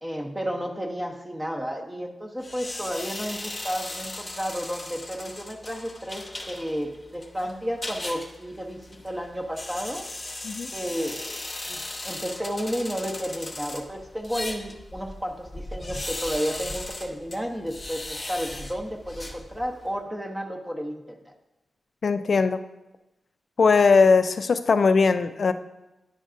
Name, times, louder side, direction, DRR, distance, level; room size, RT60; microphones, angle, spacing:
voice 1, 0.0-10.1 10.7-11.4 11.7-21.3, equal, 15° right, 2 dB, 0.7 m, -32 dB
sound 1, 2.4-19.9, left 2 dB, 30° left, 0.8 m, -38 dB
voice 2, 22.0-22.6 23.6-25.5, left 4 dB, 55° left, 10 dB, 0.3 m, -19 dB
10.0 x 5.1 x 2.5 m, 0.96 s
wide cardioid pair, 105°, 0 cm